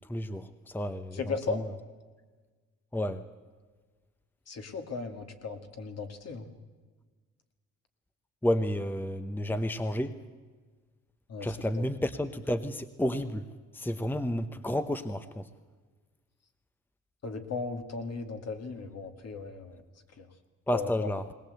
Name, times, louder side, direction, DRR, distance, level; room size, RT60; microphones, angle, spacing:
voice 1, 0.1-1.7 2.9-3.2 8.4-10.2 11.4-13.4 13.7-15.5 20.7-21.3, equal, 5° left, 10 dB, 0.9 m, -31 dB
voice 2, 1.1-1.7 4.5-6.5 11.3-11.5 11.8-11.9 17.2-19.8 20.2-20.3 20.7-21.1, left 4 dB, 55° left, 5 dB, 2.4 m, -36 dB
20.0 x 19.5 x 8.1 m, 1.4 s
cardioid pair, 90°, 30 cm